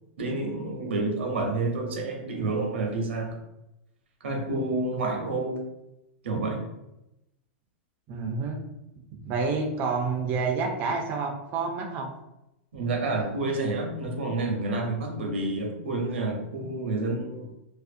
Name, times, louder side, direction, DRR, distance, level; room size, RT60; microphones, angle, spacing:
voice 1, 0.2-3.4 4.2-5.6 6.2-6.7 12.7-17.5, right 2 dB, 90° right, 2 dB, 0.6 m, -29 dB
voice 2, 8.1-8.6 9.2-12.1, right 4 dB, 30° right, 2 dB, 0.3 m, -29 dB
2.4 x 2.1 x 2.5 m, 0.89 s
supercardioid pair, 145°, 6 cm